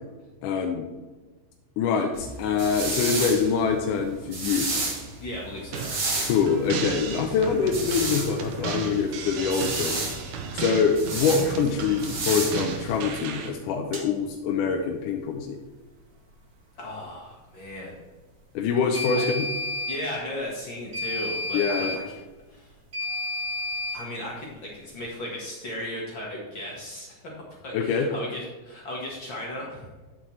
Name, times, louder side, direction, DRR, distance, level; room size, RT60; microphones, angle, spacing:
voice 1, 0.4-0.9 1.8-4.7 6.2-10.0 10.2-15.6 18.6-19.5 21.5-22.0 27.7-28.1, left 6 dB, 80° left, 3 dB, 2.2 m, -25 dB
sound 1, 2.1-13.1, right 2 dB, 40° right, 2.0 m, -32 dB
voice 2, 5.2-5.9 16.8-18.0 19.2-19.3 19.9-22.2 22.5-22.7 23.9-27.3 27.6-29.9, left 1 dB, 45° left, -3 dB, 1.9 m, -36 dB
sound 2, 5.7-13.5, right 6 dB, 80° right, 2.4 m, -35 dB
sound 3, 13.9-14.1 18.9-20.0 20.9-22.0 22.9-24.0, left 2 dB, 55° right, 0.8 m, -30 dB
8.8 x 7.8 x 3.2 m, 1.3 s
omnidirectional pair, 3.7 m